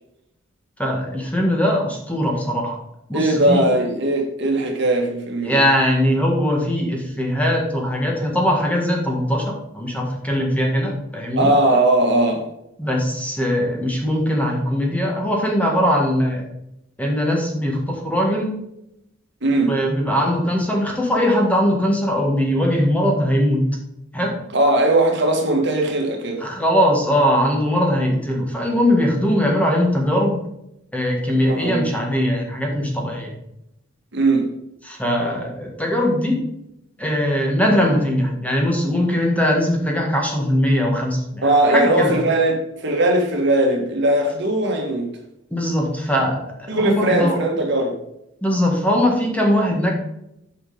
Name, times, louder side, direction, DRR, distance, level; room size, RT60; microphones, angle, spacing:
voice 1, 0.8-2.8 3.1-3.6 5.4-11.5 12.8-16.4 17.0-18.6 19.7-23.7 24.1-24.3 26.4-30.4 30.9-33.3 34.8-36.4 37.0-42.2 45.5-46.4 46.8-47.4 48.4-49.9, equal, 5° left, 1.8 m, -20 dB
voice 2, 3.1-5.6 11.4-12.5 19.4-19.7 24.5-26.4 31.5-32.0 34.1-34.5 41.4-45.1 46.7-48.0, right 1 dB, 60° right, 1.7 m, -19 dB
8.8 x 5.1 x 5.0 m
head